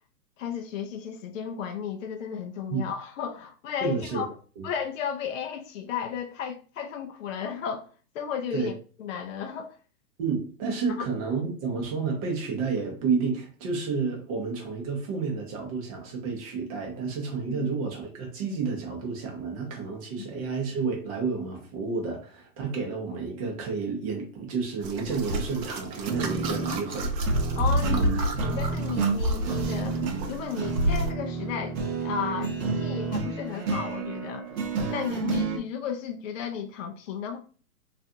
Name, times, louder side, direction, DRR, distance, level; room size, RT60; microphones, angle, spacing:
voice 1, 0.4-4.3 4.6-7.9 8.1-8.7 9.0-9.7 17.5-17.7 20.2-20.3 27.5-30.0 30.3-31.8 32.0-34.5 34.9-37.4, left 7 dB, 55° left, 0.5 m, -34 dB
voice 2, 3.8-4.3 4.6-4.7 8.5-8.7 10.2-27.1 27.9-28.4, right 5 dB, 25° right, 0.5 m, -30 dB
sound 1, 24.8-31.1, equal, 90° right, 0.7 m, -29 dB
sound 2, 26.0-35.6, right 4 dB, 60° right, 0.8 m, -31 dB
2.4 x 2.4 x 2.6 m
hypercardioid pair, 130°, 49 cm